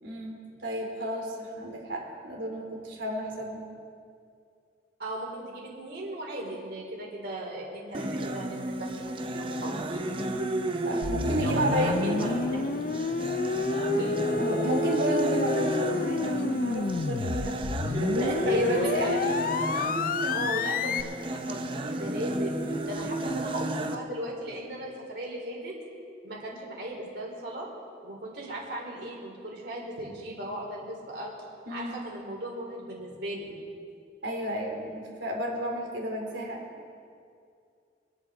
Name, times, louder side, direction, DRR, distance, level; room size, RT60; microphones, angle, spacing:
voice 1, 0.0-3.7 10.8-11.9 14.4-17.6 17.8-19.2 31.7-32.0 34.2-36.6, right 1 dB, 85° right, -1 dB, 3.3 m, -32 dB
voice 2, 5.0-10.0 11.4-12.8 13.9-14.2 18.1-19.2 20.3-21.2 21.4-22.6 22.9-25.7 26.2-27.7 28.0-31.3 31.7-33.6, right 1 dB, 60° right, -3 dB, 3.9 m, -37 dB
sound 1, 7.9-24.0, right 1 dB, 30° right, 0.7 m, -32 dB
sound 2, 11.0-21.0, left 4 dB, 50° left, 0.4 m, -30 dB
26.0 x 9.1 x 3.9 m, 2.4 s
head